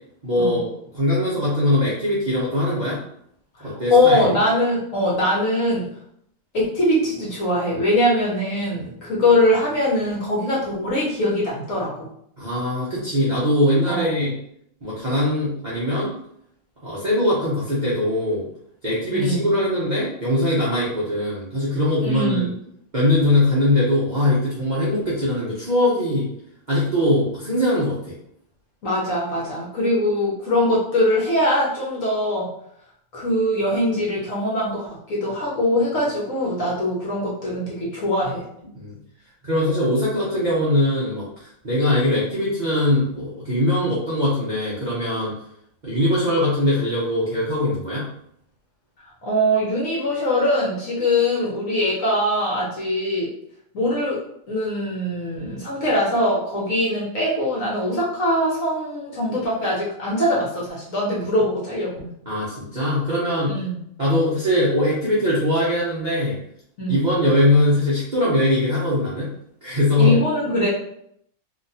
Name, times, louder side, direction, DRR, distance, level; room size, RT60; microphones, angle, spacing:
voice 1, 0.2-3.0 3.6-4.4 12.4-14.3 14.8-16.1 16.8-18.5 18.8-22.5 22.9-26.3 26.7-28.1 38.7-38.9 39.4-45.3 45.8-48.1 62.3-63.6 64.0-66.4 66.9-69.3 69.6-70.2, left 1 dB, 90° right, -9 dB, 0.4 m, -21 dB
voice 2, 3.6-5.9 6.5-12.1 13.9-14.1 19.1-19.6 22.0-22.5 28.8-32.5 33.1-38.4 49.2-53.3 53.7-54.2 54.5-62.1 63.5-63.8 66.8-67.1 69.9-70.7, left 1 dB, 55° left, -6 dB, 1.0 m, -22 dB
3.1 x 2.8 x 2.7 m, 0.71 s
omnidirectional pair, 2.2 m